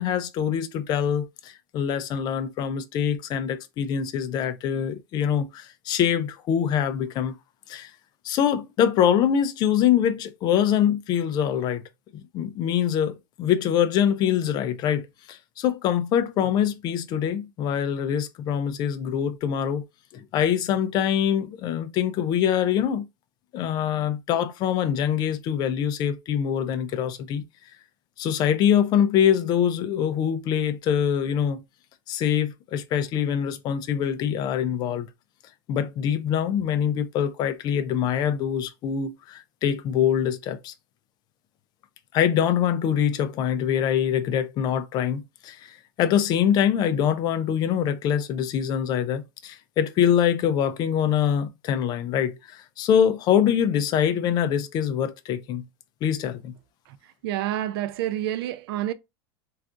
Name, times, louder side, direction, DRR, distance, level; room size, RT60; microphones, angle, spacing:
voice 1, 0.0-7.3 7.7-7.9 8.2-11.8 12.1-19.8 20.1-23.0 23.5-27.4 28.2-31.6 32.1-35.1 35.7-40.7 42.1-55.6 56.0-56.6, left 9 dB, 30° left, 0.4 m, -24 dB
voice 2, 56.9-58.9, right 12 dB, 75° right, 0.4 m, -29 dB
3.6 x 2.4 x 2.4 m
supercardioid pair, 150°, 13 cm